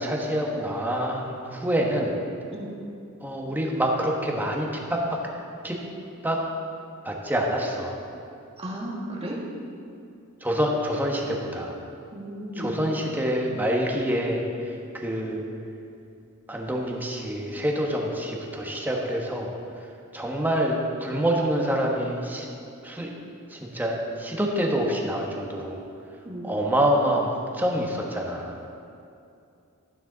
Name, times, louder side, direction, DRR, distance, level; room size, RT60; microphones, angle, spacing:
voice 1, 0.0-2.1 3.2-5.2 5.6-5.8 6.2-6.4 7.0-8.0 10.4-11.8 12.5-15.4 16.5-19.5 20.1-22.5 22.8-23.1 23.5-25.8 26.4-28.6, equal, 10° right, -1 dB, 1.1 m, -26 dB
voice 2, 8.6-9.4 12.1-12.8 26.2-26.5, right 1 dB, 25° right, -3 dB, 1.6 m, -34 dB
12.5 x 9.1 x 3.9 m, 2.6 s
head